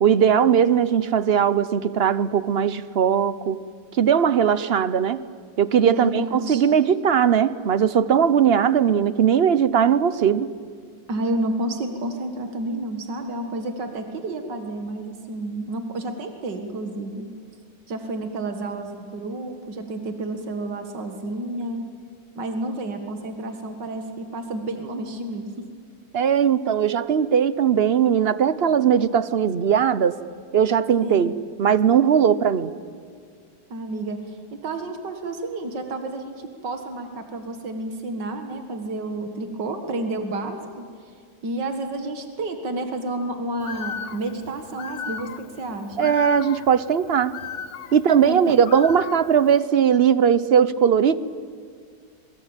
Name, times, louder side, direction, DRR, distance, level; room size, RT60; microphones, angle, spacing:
voice 1, 0.0-3.6 4.0-5.2 5.6-10.5 26.1-30.1 30.5-32.7 46.0-47.3 47.9-51.2, right 8 dB, 50° right, 16 dB, 0.8 m, -19 dB
voice 2, 5.9-6.7 11.1-17.3 17.9-21.8 22.4-25.7 31.0-31.4 33.7-34.4 34.6-40.8 41.4-46.1 48.2-48.6, right 2 dB, 85° right, 6 dB, 2.4 m, -30 dB
Bird, 43.6-49.6, left 7 dB, 50° left, 1.0 m, -37 dB
26.5 x 23.5 x 9.0 m, 2.1 s
omnidirectional pair, 1.8 m